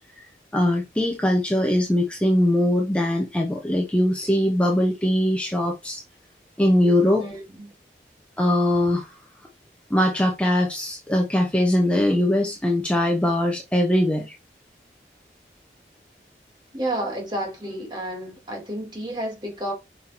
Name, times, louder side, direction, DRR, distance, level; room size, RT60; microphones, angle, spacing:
voice 1, 0.5-6.0 6.6-7.2 8.4-9.2 9.9-14.3, left 1 dB, 5° left, 1.0 m, -21 dB
voice 2, 7.2-7.7 16.7-19.7, right 1 dB, 25° right, 2.8 m, -31 dB
5.8 x 5.5 x 4.5 m
head